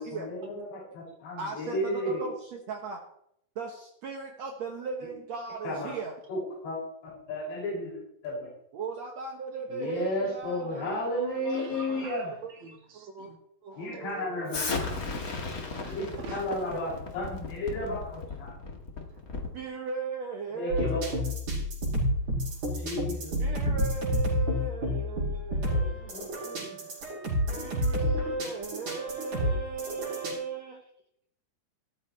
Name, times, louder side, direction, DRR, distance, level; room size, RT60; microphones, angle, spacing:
voice 1, 0.0-2.3 5.6-5.9 6.3-6.8 7.3-8.5 9.7-12.3 13.8-14.8 15.8-18.5 20.5-21.0 22.7-23.6 25.9-26.8, left 1 dB, 85° left, -6 dB, 8.6 m, -33 dB
voice 2, 1.4-3.0 3.5-6.1 8.7-12.0 12.4-12.5 12.9-13.3 13.6-14.5 19.5-21.2 23.4-26.5 27.5-30.8, right 3 dB, 85° right, 2 dB, 1.5 m, -37 dB
voice 3, 11.5-13.3 13.7-14.0 15.7-16.4 19.1-19.2 22.0-22.8 26.6-27.7, right 4 dB, 60° right, 1 dB, 1.4 m, -47 dB
Explosion, 14.5-19.6, left 3 dB, 55° left, 0.9 m, -36 dB
sound 1, 20.7-30.3, equal, 45° right, 6.9 m, -29 dB
17.0 x 14.0 x 3.3 m, 0.74 s
omnidirectional pair, 5.0 m